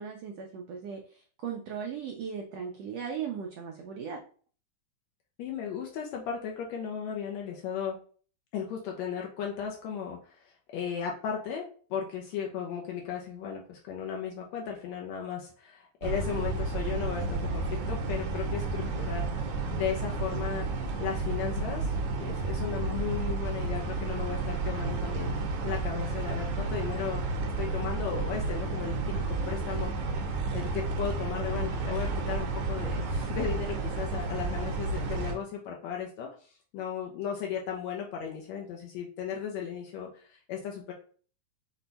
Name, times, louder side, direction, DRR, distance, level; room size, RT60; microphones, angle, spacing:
voice 1, 0.0-4.2, right 7 dB, 90° right, 1 dB, 1.4 m, -37 dB
voice 2, 5.4-8.0 8.5-11.6 11.9-19.3 19.7-27.2 27.6-30.2 30.5-40.9, left 8 dB, 80° left, 0 dB, 1.7 m, -36 dB
sound 1, 16.0-35.3, right 3 dB, 75° right, 1.9 m, -31 dB
6.1 x 2.2 x 3.9 m, 0.42 s
omnidirectional pair, 3.6 m